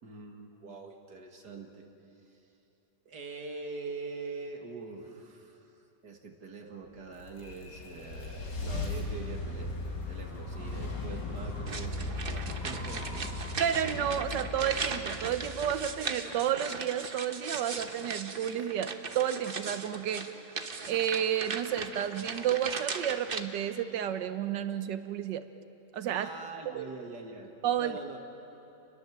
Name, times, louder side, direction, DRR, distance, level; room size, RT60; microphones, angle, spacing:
voice 1, 0.0-1.9 3.1-5.7 6.0-9.7 10.1-13.3 26.1-27.5 27.8-28.2, right 4 dB, 70° right, 3 dB, 2.7 m, -43 dB
sound 1, 7.0-16.2, left 2 dB, 80° left, 3.0 m, -38 dB
sound 2, 11.7-23.4, right 4 dB, 35° right, 1.1 m, -38 dB
voice 2, 13.6-20.3 20.9-25.4 25.9-26.3 26.6-26.9 27.6-28.0, right 10 dB, 90° right, 11 dB, 1.5 m, -31 dB
29.5 x 21.0 x 7.5 m, 2.9 s
omnidirectional pair, 1.8 m